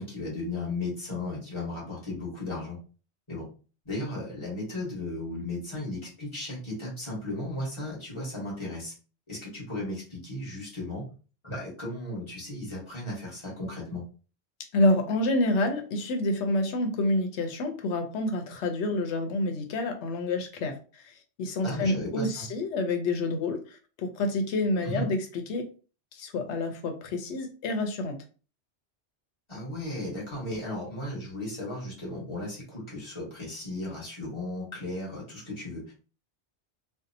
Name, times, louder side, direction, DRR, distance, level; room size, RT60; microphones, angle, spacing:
voice 1, 0.0-2.8 3.3-3.5 3.8-8.9 9.3-11.1 11.4-14.0 21.6-22.4 24.8-25.1 29.5-35.9, left 1 dB, 25° left, -5 dB, 1.1 m, -35 dB
voice 2, 14.7-25.7 26.1-28.2, left 2 dB, 85° left, 5 dB, 0.9 m, -28 dB
2.6 x 2.0 x 2.6 m, 0.36 s
omnidirectional pair, 1.2 m